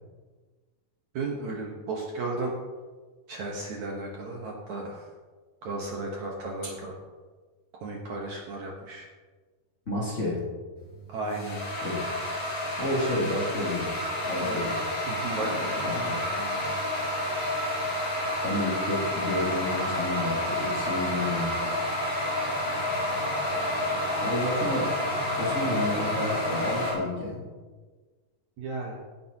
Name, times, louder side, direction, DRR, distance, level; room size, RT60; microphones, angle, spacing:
voice 1, 1.1-2.5 3.3-5.0 5.6-6.9 7.8-9.1 11.1-11.6 14.2-14.6 15.1-16.7 28.6-29.0, right 2 dB, 60° right, -1 dB, 2.3 m, -35 dB
voice 2, 9.9-10.4 11.8-12.0 12.8-13.9 14.2-14.8 15.4-16.2 18.4-21.7 24.2-24.9 25.4-27.5, left 1 dB, 25° left, -5 dB, 2.5 m, -31 dB
sound 1, 10.8-26.9, left 1 dB, 65° left, 5.5 m, -29 dB
17.0 x 10.5 x 3.0 m, 1.4 s
omnidirectional pair, 4.4 m